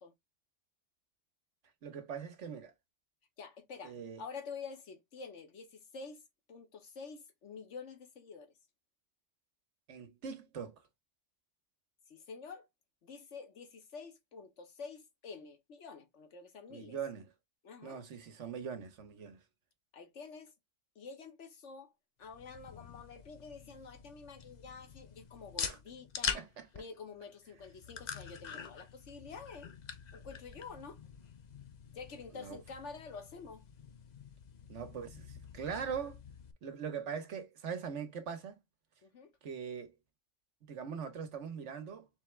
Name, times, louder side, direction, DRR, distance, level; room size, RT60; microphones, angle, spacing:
voice 1, 1.8-2.7 3.8-4.2 9.9-10.8 16.7-17.3 17.8-19.4 25.6-25.8 26.3-26.7 32.3-32.6 34.7-36.2 36.6-38.6 39.4-39.9 40.6-42.1, right 7 dB, 75° right, 1.3 m, -41 dB
voice 2, 3.4-6.2 6.5-8.5 12.1-12.7 13.0-17.0 17.6-18.0 19.9-20.5 20.9-21.9 22.2-26.4 26.7-29.7 30.1-31.0 31.9-33.6 39.0-39.3, left 5 dB, 75° left, 1.4 m, -48 dB
sound 1, 22.2-36.5, left 6 dB, 45° left, 0.6 m, -45 dB
4.1 x 3.4 x 3.1 m
omnidirectional pair, 1.2 m